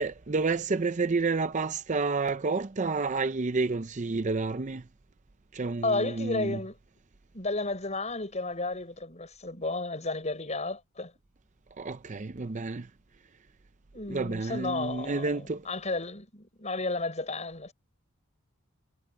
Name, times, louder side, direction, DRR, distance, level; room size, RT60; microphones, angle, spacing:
voice 1, 0.0-4.8 5.5-6.6 11.8-12.9 14.1-15.6, right 3 dB, 35° right, 0.6 m, -30 dB
voice 2, 5.8-6.8 7.3-11.1 13.9-17.7, left 3 dB, 35° left, 6.1 m, -33 dB
head